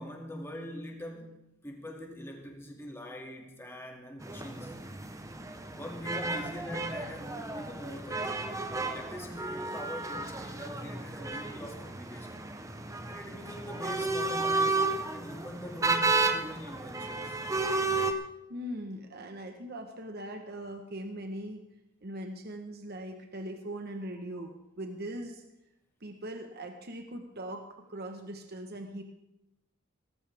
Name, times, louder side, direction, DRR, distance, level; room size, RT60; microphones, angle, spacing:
voice 1, 0.0-1.3 1.6-4.8 5.7-12.4 13.1-17.4, equal, 10° left, 1 dB, 2.4 m, -43 dB
sound 1, 4.2-18.1, right 3 dB, 15° right, 0.9 m, -33 dB
voice 2, 18.5-21.6 22.0-25.4 26.0-29.0, right 1 dB, 50° right, 4 dB, 1.2 m, -40 dB
18.0 x 15.0 x 3.5 m, 0.88 s
head